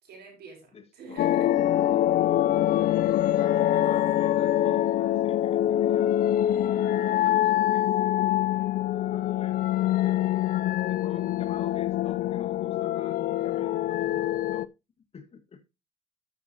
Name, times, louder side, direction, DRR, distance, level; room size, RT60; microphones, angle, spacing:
voice 1, 0.0-1.5 8.0-8.1 8.4-8.7, right 3 dB, 70° right, 5.8 m, -48 dB
voice 2, 0.7-1.2 2.9-6.1 6.6-7.9 8.6-9.6 10.0-14.7 15.1-15.6, left 5 dB, 35° left, 1.5 m, -48 dB
sound 1, 1.2-14.7, left 12 dB, 55° left, 0.4 m, -24 dB
13.0 x 6.6 x 2.7 m
cardioid pair, 110°, 17 cm